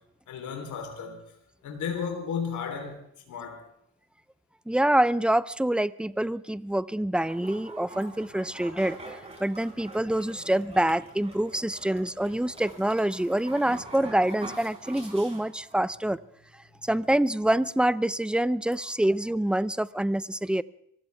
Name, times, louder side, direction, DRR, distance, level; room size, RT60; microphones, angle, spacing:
voice 1, 0.3-1.2 1.6-3.0 3.3-3.7, left 6 dB, 75° left, 3.7 m, -33 dB
voice 2, 4.7-16.2 16.8-20.6, right 1 dB, 5° right, 0.5 m, -26 dB
sound 1, 7.2-15.8, right 2 dB, 20° right, 5.2 m, -45 dB
25.0 x 15.5 x 3.5 m
cardioid pair, 90°, 30 cm